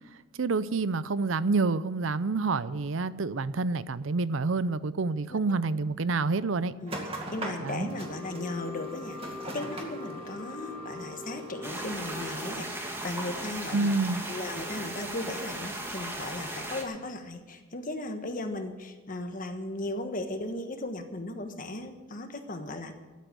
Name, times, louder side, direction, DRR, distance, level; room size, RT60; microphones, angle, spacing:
voice 1, 0.4-6.7 7.6-7.9 13.7-14.2, right 3 dB, 70° right, 16 dB, 0.6 m, -28 dB
voice 2, 6.8-13.9 14.3-22.9, left 2 dB, 40° left, 7 dB, 1.3 m, -37 dB
sound 1, 6.9-12.6, equal, 30° right, 2.1 m, -39 dB
sound 2, 11.6-16.8, right 1 dB, 10° right, 1.6 m, -37 dB
12.5 x 8.1 x 9.5 m, 1.2 s
head